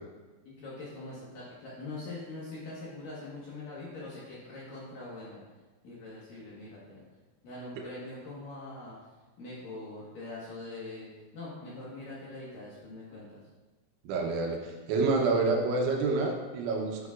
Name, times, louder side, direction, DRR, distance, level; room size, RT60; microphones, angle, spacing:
voice 1, 0.4-5.4 5.8-7.0 7.4-9.1 9.4-13.4, left 2 dB, 60° left, -7 dB, 2.4 m, -43 dB
voice 2, 14.0-17.1, right 3 dB, 80° right, 0 dB, 3.2 m, -28 dB
11.0 x 6.9 x 2.5 m, 1.3 s
omnidirectional pair, 5.6 m